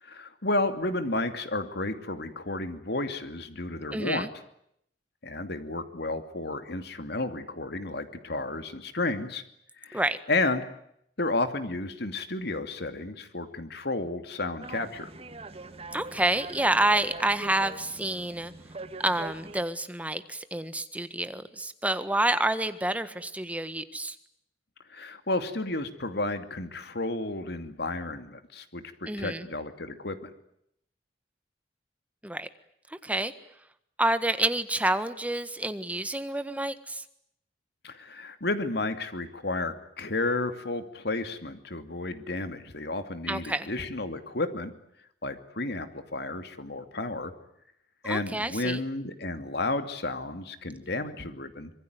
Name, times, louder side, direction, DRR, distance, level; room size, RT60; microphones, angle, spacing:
voice 1, 0.0-4.3 5.2-9.4 9.8-10.0 10.3-10.6 11.2-15.1 24.9-30.3 37.8-44.7 45.2-47.3 48.0-51.7, left 2 dB, 65° left, 9 dB, 2.7 m, -32 dB
voice 2, 3.9-4.3 9.9-10.2 15.9-18.5 19.0-24.2 29.1-29.5 32.2-32.5 32.9-33.3 34.0-37.0 43.3-43.7 48.0-48.8, right 1 dB, 10° right, 11 dB, 1.6 m, -28 dB
sound 1, 14.6-19.7, right 3 dB, 35° right, 1.8 m, -43 dB
25.5 x 22.5 x 9.5 m, 0.74 s
head